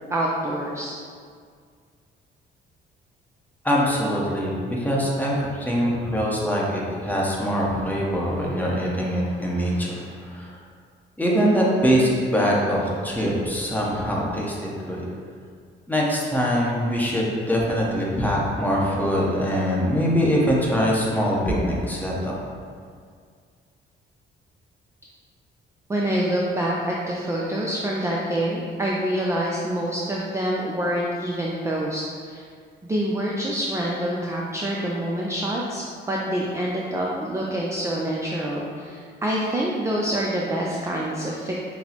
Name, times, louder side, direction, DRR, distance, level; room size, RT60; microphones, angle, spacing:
voice 1, 0.1-0.9 25.9-32.4 32.8-41.5, right 1 dB, 15° right, -3 dB, 0.4 m, -26 dB
voice 2, 3.6-10.5 11.2-15.1 15.9-22.3, equal, 10° left, -4 dB, 0.8 m, -23 dB
5.9 x 2.0 x 2.9 m, 2.1 s
cardioid pair, 90°, 20 cm